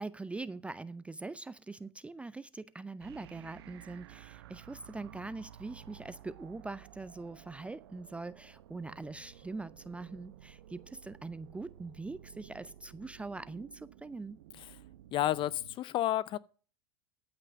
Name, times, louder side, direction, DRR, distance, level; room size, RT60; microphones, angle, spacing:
voice 1, 0.0-14.4, right 3 dB, 10° right, 0.4 m, -43 dB
sound 1, 3.0-15.8, right 12 dB, 75° right, 0.8 m, -54 dB
voice 2, 15.1-16.4, left 13 dB, 40° left, 0.6 m, -30 dB
14.0 x 5.8 x 5.2 m
hypercardioid pair, 95°, 13 cm